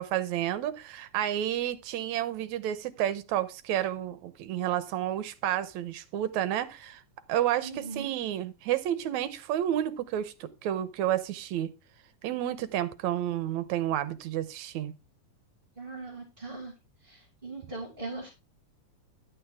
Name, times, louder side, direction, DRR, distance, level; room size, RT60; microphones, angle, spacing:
voice 1, 0.0-7.0 7.3-11.7 12.2-14.9, right 11 dB, 70° right, 2.1 m, -30 dB
voice 2, 7.6-8.1 15.8-16.7 17.0-18.3, right 3 dB, 15° right, 6.0 m, -40 dB
12.0 x 8.6 x 3.5 m
omnidirectional pair, 3.6 m